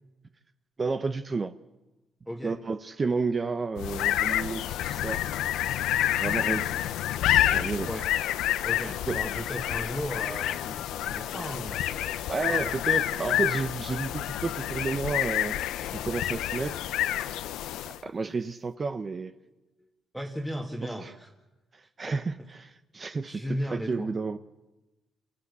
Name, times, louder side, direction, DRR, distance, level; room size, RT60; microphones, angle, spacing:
voice 1, 0.8-1.5 2.4-5.2 6.1-6.9 7.5-7.9 9.1-9.2 12.3-15.6 15.9-16.8 17.9-19.3 20.8-21.1 21.7-24.4, right 4 dB, 35° right, 10 dB, 0.8 m, -31 dB
sound 1, 3.8-18.1, left 12 dB, 90° left, 0.7 m, -28 dB
voice 2, 8.6-12.6 13.3-13.4 20.1-21.3 22.0-22.2 23.3-24.1, equal, 5° right, 0 dB, 2.0 m, -36 dB
27.0 x 15.5 x 8.2 m, 1.1 s
cardioid pair, 90°, 0 cm